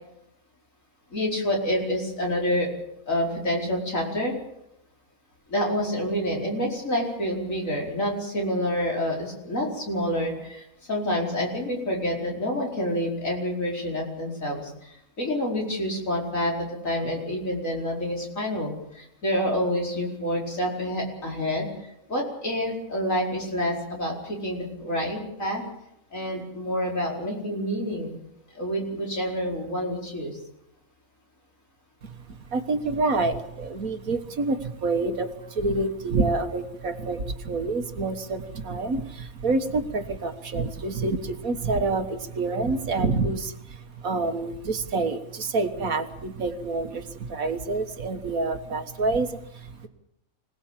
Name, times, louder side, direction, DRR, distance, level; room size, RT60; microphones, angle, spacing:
voice 1, 1.1-2.7 3.1-4.4 5.5-21.7 22.1-25.6 26.1-28.2 28.5-30.4, equal, 60° left, -1 dB, 5.4 m, -28 dB
voice 2, 32.0-49.9, right 3 dB, 65° right, 8 dB, 1.8 m, -27 dB
25.5 x 18.0 x 7.5 m, 0.83 s
omnidirectional pair, 1.6 m